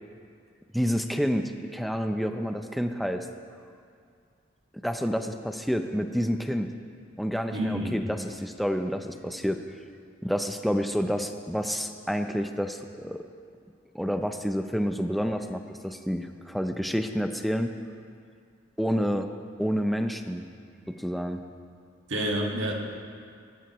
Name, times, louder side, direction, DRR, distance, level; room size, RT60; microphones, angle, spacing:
voice 1, 0.7-3.3 4.8-6.7 7.2-9.6 10.2-13.2 13.9-17.7 18.8-19.3 19.6-20.5 20.9-21.4, equal, ahead, 6 dB, 0.5 m, -29 dB
voice 2, 7.5-8.1 22.1-22.7, equal, 75° right, -1 dB, 1.8 m, -28 dB
18.5 x 12.5 x 3.1 m, 2.3 s
head